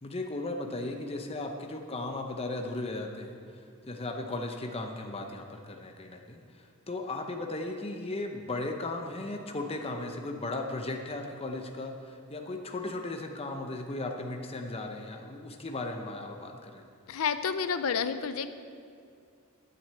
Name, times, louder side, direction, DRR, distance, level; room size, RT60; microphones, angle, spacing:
voice 1, 0.0-16.9, left 2 dB, 25° left, 3 dB, 0.7 m, -36 dB
voice 2, 17.1-18.5, left 6 dB, 70° left, 11 dB, 0.5 m, -30 dB
9.5 x 7.8 x 7.5 m, 2.4 s
head